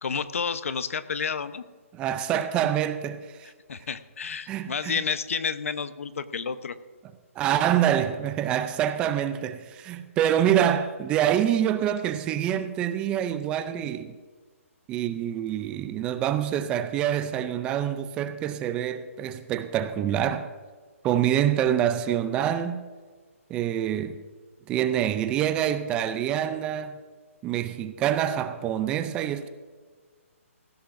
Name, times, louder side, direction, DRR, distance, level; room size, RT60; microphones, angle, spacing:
voice 1, 0.0-1.6 3.7-6.8, left 6 dB, 65° left, 0.9 m, -30 dB
voice 2, 1.9-3.5 4.5-5.0 7.4-14.2 14.9-20.5 21.0-22.8 23.5-24.2 24.7-27.0 27.4-29.5, right 10 dB, 10° right, 0.4 m, -26 dB
19.0 x 15.5 x 2.6 m
hypercardioid pair, 160°, 8 cm